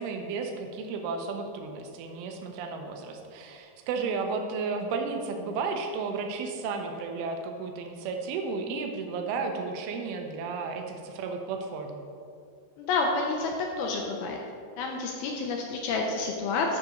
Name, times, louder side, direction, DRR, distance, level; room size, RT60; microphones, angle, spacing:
voice 1, 0.0-12.0, right 4 dB, 80° right, 4 dB, 2.3 m, -33 dB
voice 2, 12.8-14.4 14.8-16.8, left 3 dB, 85° left, 1 dB, 2.2 m, -29 dB
10.5 x 3.7 x 6.3 m, 2.3 s
omnidirectional pair, 5.2 m